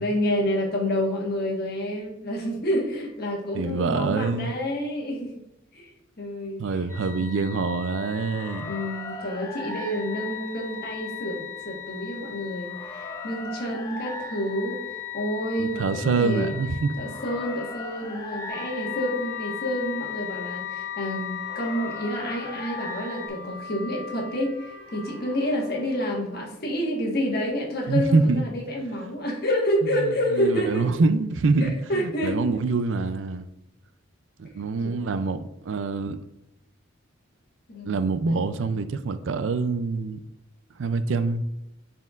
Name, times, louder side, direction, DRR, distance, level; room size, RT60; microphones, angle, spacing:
voice 1, 0.0-5.3 5.7-5.9 6.2-6.8 7.2-7.5 8.6-16.5 17.0-30.9 31.6-32.4 34.8-35.3 37.7-38.5, equal, 50° left, 1.4 m, -29 dB
voice 2, 3.5-4.5 6.6-8.7 15.6-16.9 27.9-28.4 30.0-33.5 34.4-36.2 37.9-40.2 40.8-41.4, right 4 dB, 70° right, 0.4 m, -25 dB
sound 1, 6.9-23.3, left 7 dB, 15° left, 0.8 m, -37 dB
sound 2, 18.5-26.5, left 3 dB, 45° right, 1.9 m, -42 dB
10.5 x 4.3 x 2.4 m
head